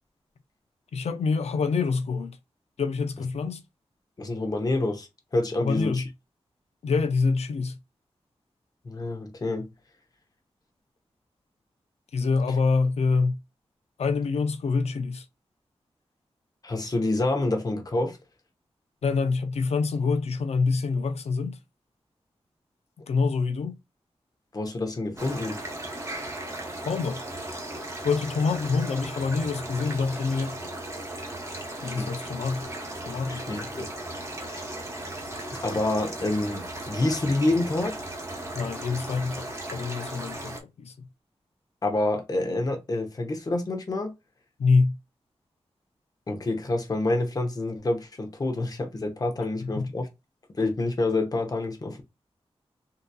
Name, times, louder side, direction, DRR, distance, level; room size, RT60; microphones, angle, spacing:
voice 1, 0.9-2.4 2.8-3.6 5.6-6.0 6.8-7.8 12.1-13.4 14.0-15.2 19.0-21.6 23.1-23.8 26.8-27.2 28.0-30.6 31.8-32.7 33.1-33.8 38.5-41.1 44.6-45.0 49.6-49.9, left 4 dB, 85° left, 0.5 m, -26 dB
voice 2, 4.2-5.1 5.3-6.0 8.8-9.7 16.6-18.2 24.5-25.6 31.8-32.1 33.3-33.9 34.4-34.7 35.5-38.0 41.8-44.1 46.3-50.1 50.6-52.0, left 2 dB, 35° left, 0.8 m, -27 dB
sound 1, 25.2-40.6, right 1 dB, 25° right, 0.9 m, -36 dB
3.8 x 2.7 x 2.3 m
wide cardioid pair, 120°, 11 cm